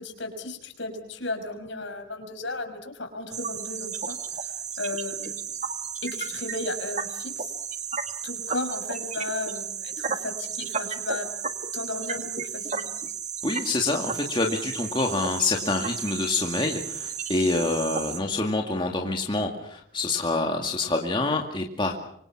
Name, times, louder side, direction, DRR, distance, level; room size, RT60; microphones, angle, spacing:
voice 1, 0.0-4.2 4.8-5.4 6.0-7.5 8.2-11.3 11.7-12.9, left 2 dB, 65° left, 6 dB, 5.6 m, -34 dB
sound 1, 3.3-18.2, right 6 dB, 35° right, 1.9 m, -33 dB
voice 2, 13.4-21.9, left 2 dB, 25° left, 2 dB, 2.2 m, -26 dB
26.5 x 25.5 x 6.0 m, 0.68 s
head